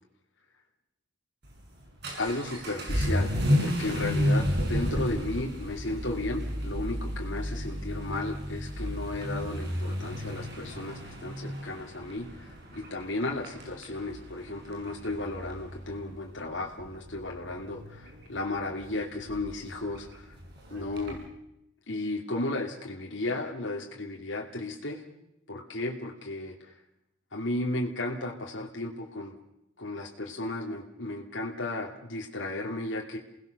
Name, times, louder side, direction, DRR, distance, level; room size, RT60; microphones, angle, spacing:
Vehicle / Accelerating revving vroom, 1.4-21.2, equal, 60° right, 5.9 m, -33 dB
voice 1, 2.2-20.3 20.7-21.2 21.9-25.0 25.5-26.7 27.3-29.4 29.8-33.2, left 2 dB, 75° left, 0 dB, 2.8 m, -34 dB
28.5 x 19.0 x 6.8 m, 0.84 s
head